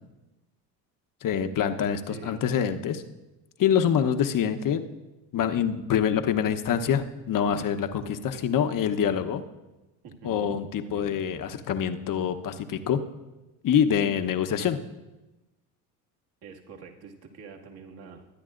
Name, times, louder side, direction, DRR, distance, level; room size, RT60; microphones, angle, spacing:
voice 1, 1.2-3.0 3.6-4.9 5.3-9.4 10.2-13.0 13.6-14.8, left 8 dB, 40° left, 8 dB, 1.1 m, -25 dB
voice 2, 2.1-2.4 10.0-11.2 16.4-18.2, right 5 dB, 50° right, 1 dB, 2.2 m, -45 dB
23.0 x 10.0 x 2.6 m, 1.1 s
hypercardioid pair, 75°, 49 cm